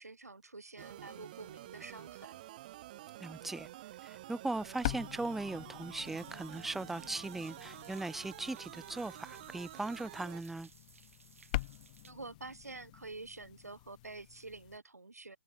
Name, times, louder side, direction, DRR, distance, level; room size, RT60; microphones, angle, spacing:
voice 1, 0.0-2.4 12.0-15.4, right 3 dB, 80° right, 1.7 m, -48 dB
sound 1, 0.8-10.4, right 15 dB, 35° right, 1.5 m, -50 dB
voice 2, 3.2-3.7 4.0-10.7, right 2 dB, 5° right, 0.5 m, -39 dB
sound 2, 4.5-14.8, left 19 dB, 30° left, 1.1 m, -45 dB
sound 3, 6.0-12.1, right 5 dB, 60° right, 5.3 m, -61 dB
figure-of-eight pair, 135°, 8 cm